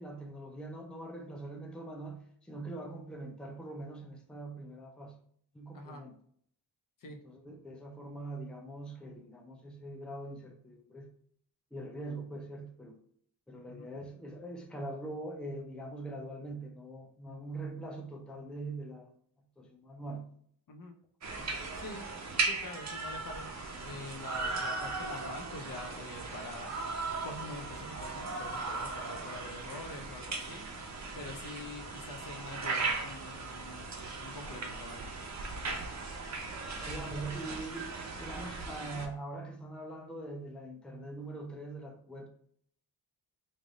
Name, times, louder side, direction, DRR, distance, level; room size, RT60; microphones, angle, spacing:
voice 1, 0.0-5.2 5.5-6.1 7.1-11.1 11.7-13.0 13.5-19.1 19.6-20.3 21.4-21.5 36.9-42.3, right 2 dB, ahead, 2 dB, 0.5 m, -43 dB
sound 1, 21.2-39.1, right 3 dB, 40° right, 0.7 m, -38 dB
voice 2, 21.7-22.1 22.4-23.5 23.8-26.7 27.2-30.7 31.1-35.0, left 2 dB, 50° left, 4 dB, 0.7 m, -45 dB
3.3 x 2.6 x 3.8 m, 0.62 s
wide cardioid pair, 105°, 42 cm